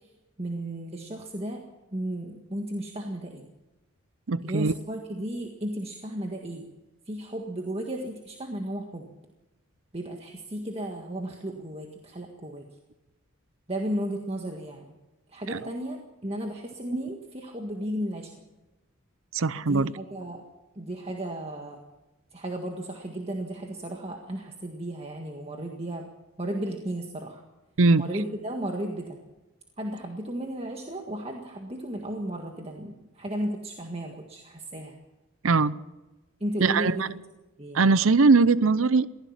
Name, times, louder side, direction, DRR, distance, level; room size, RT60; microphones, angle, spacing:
voice 1, 0.4-1.6 1.9-3.5 4.4-6.7 7.1-9.1 9.9-12.7 13.7-14.9 15.3-18.3 19.6-20.4 20.8-21.8 22.3-26.1 26.4-27.4 28.0-29.2 29.8-35.0 36.4-37.1 37.6-37.8, right 1 dB, 30° right, 2 dB, 1.7 m, -34 dB
voice 2, 4.3-4.7 15.5-15.6 19.3-19.9 27.8-28.1 35.4-35.7 36.6-37.1 37.7-39.1, right 4 dB, 65° right, 17 dB, 0.6 m, -21 dB
23.0 x 16.0 x 7.4 m, 1.1 s
head